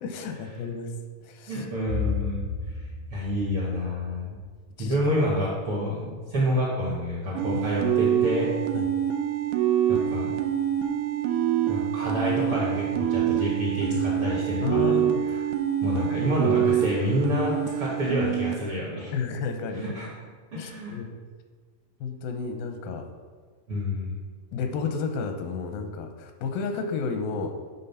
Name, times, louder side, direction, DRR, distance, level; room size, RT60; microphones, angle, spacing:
voice 1, 0.0-1.0 1.2-1.7 4.8-5.0 7.5-7.7 8.7-8.9 14.6-15.2 15.9-16.4 19.1-20.0 20.6-21.1 22.0-23.1 24.5-27.5, left 5 dB, 85° left, 5 dB, 2.4 m, -32 dB
voice 2, 1.5-4.3 4.8-8.5 9.9-10.3 11.7-14.9 15.8-19.1 19.7-20.1 20.5-21.0 23.7-24.2, left 1 dB, 65° right, -5 dB, 1.4 m, -28 dB
sound 1, 7.4-18.5, right 10 dB, 85° right, 2.4 m, -26 dB
9.6 x 3.8 x 5.5 m, 1.5 s
omnidirectional pair, 4.2 m